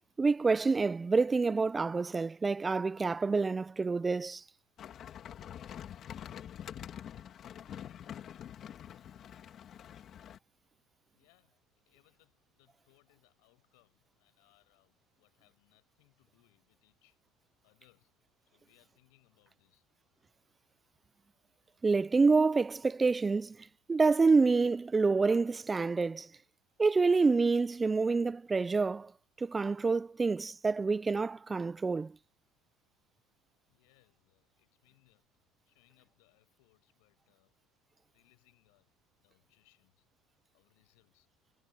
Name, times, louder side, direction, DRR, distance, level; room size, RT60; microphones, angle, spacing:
voice 1, 0.2-4.4 21.8-23.6 23.9-26.3 26.8-29.1 29.4-32.2, right 4 dB, 20° right, 0.3 m, -27 dB
sound 1, 4.8-10.4, left 10 dB, 45° left, 2.7 m, -46 dB
voice 2, 11.1-17.2 17.6-19.9 33.7-35.3 35.6-37.5 38.1-38.9 39.2-40.1 40.5-41.3, left 28 dB, 85° left, 5.7 m, -70 dB
supercardioid pair, 120°, 0 cm